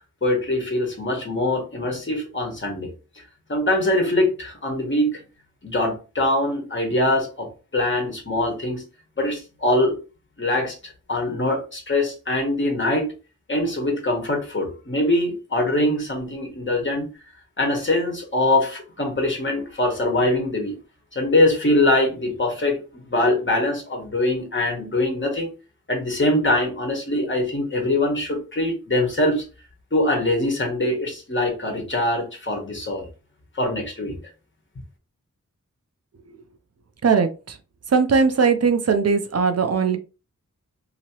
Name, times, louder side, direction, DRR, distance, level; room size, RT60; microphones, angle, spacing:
voice 1, 0.2-2.9 3.5-5.2 5.6-8.8 9.2-10.0 10.4-13.1 13.5-17.1 17.6-20.8 21.1-25.5 25.9-29.4 29.9-33.1 33.5-34.2, left 1 dB, 35° left, 1 dB, 1.3 m, -23 dB
voice 2, 37.0-37.6 37.9-40.0, right 5 dB, 50° right, 8 dB, 0.5 m, -19 dB
2.9 x 2.8 x 2.9 m, 0.33 s
wide cardioid pair, 90°, 32 cm